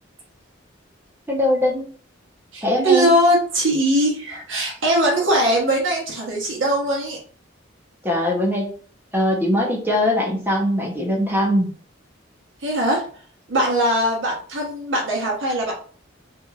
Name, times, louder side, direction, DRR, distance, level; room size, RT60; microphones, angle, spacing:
voice 1, 1.3-1.8 2.6-3.1 8.0-8.7 9.1-11.7, left 1 dB, 10° right, -1 dB, 0.7 m, -21 dB
voice 2, 2.5-7.2 12.6-13.0 13.5-15.7, right 1 dB, 70° right, -1 dB, 1.1 m, -20 dB
3.0 x 2.7 x 2.3 m, 0.43 s
head